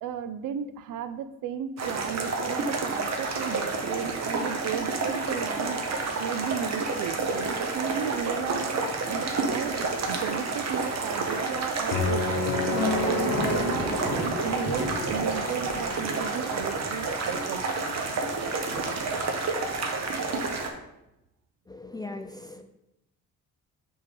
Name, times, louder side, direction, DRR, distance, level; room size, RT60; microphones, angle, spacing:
voice 1, 0.0-5.8 6.2-12.3 12.6-17.7, right 8 dB, 80° right, 11 dB, 0.5 m, -35 dB
sound 1, 1.8-20.7, right 3 dB, 55° right, 1.1 m, -29 dB
sound 2, 11.9-16.0, left 3 dB, 80° left, 1.0 m, -30 dB
sound 3, 12.2-19.7, equal, 40° right, 1.5 m, -39 dB
voice 2, 21.7-22.6, left 2 dB, 15° left, 6 dB, 0.3 m, -39 dB
6.0 x 3.6 x 5.0 m, 0.87 s
cardioid pair, 100°, 32 cm